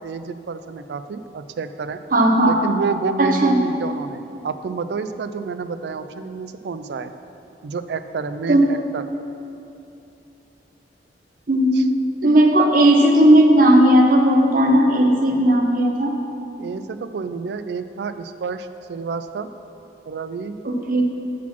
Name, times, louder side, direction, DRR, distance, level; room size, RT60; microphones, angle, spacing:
voice 1, 0.0-2.0 2.4-7.1 7.6-9.0 11.7-11.9 12.2-12.4 16.6-19.5 20.1-20.6, right 4 dB, 70° right, 11 dB, 0.3 m, -29 dB
voice 2, 2.1-2.6 3.2-3.6 8.5-8.7 11.5-11.9 12.2-16.2 20.6-21.0, right 1 dB, 50° right, 2 dB, 0.7 m, -15 dB
6.1 x 5.9 x 5.9 m, 2.8 s
head